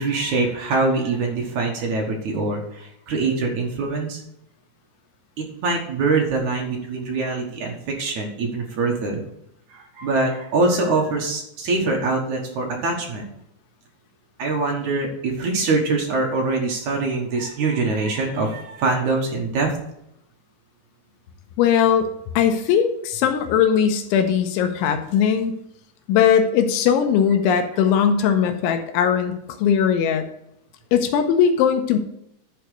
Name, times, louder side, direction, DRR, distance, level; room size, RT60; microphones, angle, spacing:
voice 1, 0.0-4.2 5.4-9.2 9.7-13.3 14.4-19.8 28.2-28.4, right 3 dB, 65° right, 1 dB, 1.9 m, -24 dB
voice 2, 21.6-25.6 26.1-29.3 29.6-30.3 30.9-32.0, left 8 dB, 85° left, 7 dB, 3.1 m, -19 dB
11.5 x 4.7 x 6.6 m, 0.78 s
omnidirectional pair, 5.6 m